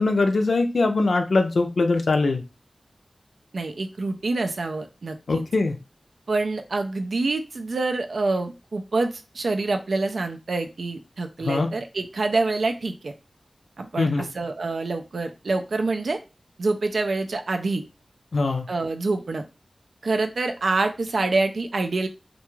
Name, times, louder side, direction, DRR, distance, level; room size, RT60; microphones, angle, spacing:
voice 1, 0.0-2.4 5.3-5.8 11.4-11.7 14.0-14.2 18.3-18.7, left 3 dB, 85° left, 6 dB, 0.4 m, -22 dB
voice 2, 3.5-5.4 6.3-13.1 13.8-16.2 16.6-17.8 18.7-19.4 20.0-22.1, right 3 dB, 85° right, 6 dB, 0.3 m, -26 dB
2.4 x 2.2 x 3.0 m, 0.29 s
wide cardioid pair, 65°, 0 cm